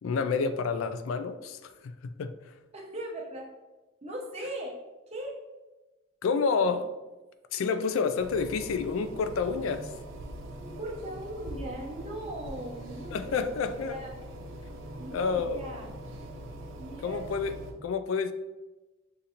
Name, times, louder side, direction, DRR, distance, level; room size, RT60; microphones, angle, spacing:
voice 1, 0.0-2.5 6.2-6.9 7.5-9.9 13.1-14.0 15.1-15.7 17.0-17.5 17.8-18.3, left 5 dB, 85° left, 10 dB, 0.3 m, -29 dB
voice 2, 2.7-3.5 4.0-4.8 5.1-5.4 6.5-6.6 10.6-14.1 15.0-15.9 16.8-17.2, right 1 dB, 30° right, -1 dB, 0.7 m, -39 dB
sound 1, 8.2-17.7, right 1 dB, 75° right, 0.6 m, -43 dB
6.6 x 2.6 x 2.8 m, 1.1 s
head